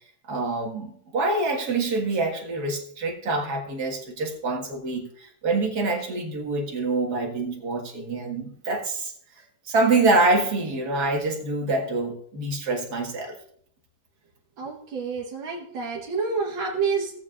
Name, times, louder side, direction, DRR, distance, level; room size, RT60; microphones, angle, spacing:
voice 1, 0.2-9.1 9.7-13.3, right 3 dB, 50° right, 0 dB, 2.2 m, -26 dB
voice 2, 14.6-17.1, right 5 dB, 75° right, -5 dB, 2.1 m, -28 dB
18.0 x 7.3 x 2.5 m, 0.63 s
omnidirectional pair, 2.2 m